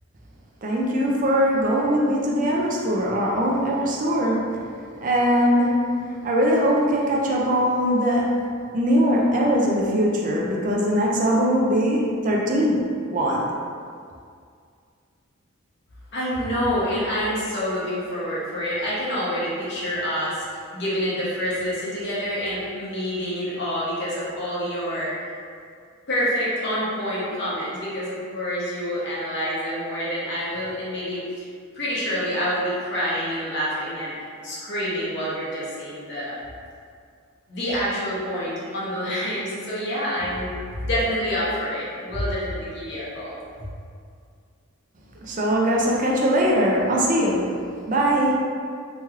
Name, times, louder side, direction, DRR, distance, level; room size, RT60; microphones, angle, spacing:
voice 1, 0.6-4.5 5.0-13.5 45.2-48.4, equal, 40° right, -2 dB, 0.4 m, -21 dB
voice 2, 16.1-25.1 26.1-31.5 31.7-34.1 34.4-36.3 37.5-40.5 40.8-43.3, equal, 55° left, -8 dB, 0.9 m, -27 dB
3.0 x 3.0 x 2.3 m, 2.2 s
head